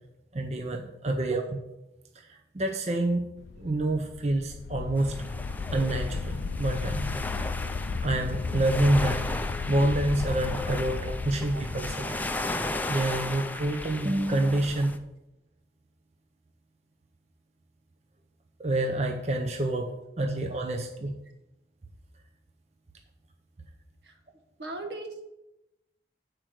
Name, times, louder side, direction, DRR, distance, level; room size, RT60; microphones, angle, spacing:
voice 1, 0.3-1.6 2.3-3.2 3.6-5.2 5.7-7.1 8.0-9.2 9.7-12.2 12.9-15.0 18.6-19.9 20.2-21.1, right 1 dB, 40° right, 4 dB, 0.6 m, -27 dB
sound 1, 3.4-13.4, left 4 dB, 80° left, 0.4 m, -35 dB
sound 2, 5.0-15.0, left 2 dB, 10° left, 0.4 m, -35 dB
voice 2, 24.6-25.2, right 2 dB, 80° right, 4 dB, 1.3 m, -40 dB
7.8 x 4.5 x 6.3 m, 0.93 s
head